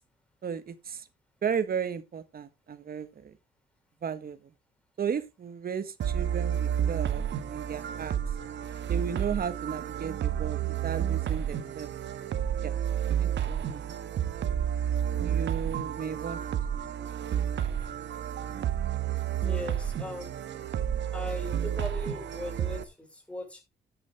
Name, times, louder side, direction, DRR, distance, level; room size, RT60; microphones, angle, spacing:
voice 1, 0.4-1.0 1.4-3.3 4.0-4.4 5.0-7.2 7.5-8.2 8.9-11.9 12.6-12.7 13.2-14.6 15.2-16.4 16.7-17.2, right 7 dB, 50° right, 1.5 m, -35 dB
sound 1, 6.0-22.8, right 9 dB, 65° right, 1.5 m, -31 dB
voice 2, 19.4-20.3 21.1-23.6, left 1 dB, 5° left, 5.7 m, -38 dB
10.5 x 10.0 x 3.5 m
cardioid pair, 90°, 20 cm